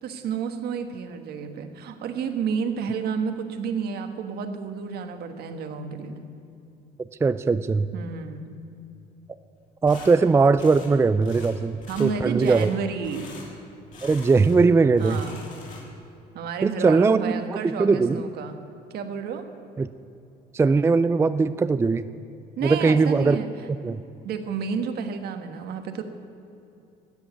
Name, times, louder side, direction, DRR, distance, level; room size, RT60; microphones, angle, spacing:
voice 1, 0.0-6.3 7.9-8.6 11.9-13.3 15.0-15.5 16.3-18.6 18.9-19.5 22.6-23.5 24.2-26.0, right 6 dB, 70° right, 7 dB, 1.3 m, -31 dB
voice 2, 7.2-7.9 9.8-12.7 14.0-15.2 16.6-18.2 19.8-19.9 20.5-22.0 22.6-23.4 23.8-24.0, right 4 dB, 15° right, 13 dB, 0.3 m, -20 dB
sound 1, 9.9-10.1 10.6-10.9 11.2-11.5 11.8-12.1 12.4-12.7 13.0-13.5 13.9-14.6 14.9-16.0, left 3 dB, 50° left, 3.9 m, -43 dB
13.0 x 8.8 x 8.2 m, 2.7 s
cardioid pair, 110°, 17 cm